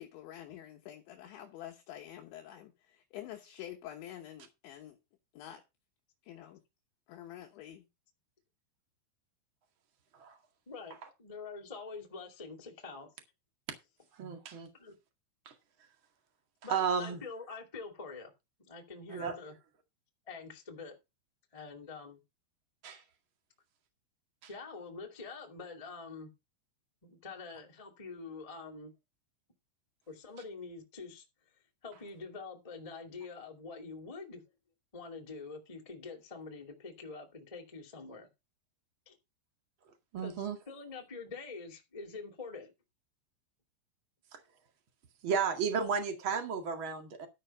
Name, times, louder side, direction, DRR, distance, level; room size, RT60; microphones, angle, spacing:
voice 1, 0.0-5.0 5.3-5.6 6.2-6.6 7.1-7.9, left 12 dB, 75° left, 3.3 m, -47 dB
voice 2, 10.6-13.1 14.8-14.9 16.6-18.3 18.6-19.5 20.3-21.0 21.5-22.2 24.5-26.3 27.0-28.9 30.1-31.2 31.8-34.4 34.9-38.3 39.0-39.1 40.2-42.7, left 4 dB, 25° left, 0.8 m, -45 dB
voice 3, 14.1-14.7 15.4-15.5 16.7-17.2 19.1-19.4 22.8-23.0 24.4-24.5 40.1-40.6 44.3-44.4 45.2-47.3, right 6 dB, 55° right, 1.3 m, -33 dB
12.5 x 5.7 x 5.5 m
omnidirectional pair, 5.7 m